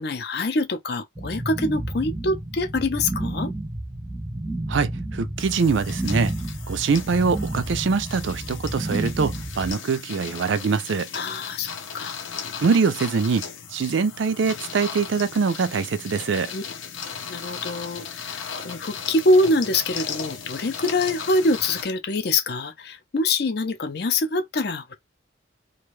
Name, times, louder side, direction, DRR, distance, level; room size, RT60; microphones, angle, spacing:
voice 1, 0.0-3.5 11.1-12.2 16.5-16.6 17.3-24.9, left 2 dB, 55° left, 0.5 m, -24 dB
sound 1, 1.1-9.7, right 1 dB, 10° right, 0.6 m, -31 dB
voice 2, 4.7-6.3 6.7-11.1 12.6-16.5, right 5 dB, 70° right, 0.4 m, -23 dB
sound 2, 5.4-21.8, left 6 dB, 90° left, 0.7 m, -37 dB
2.5 x 2.3 x 3.1 m
head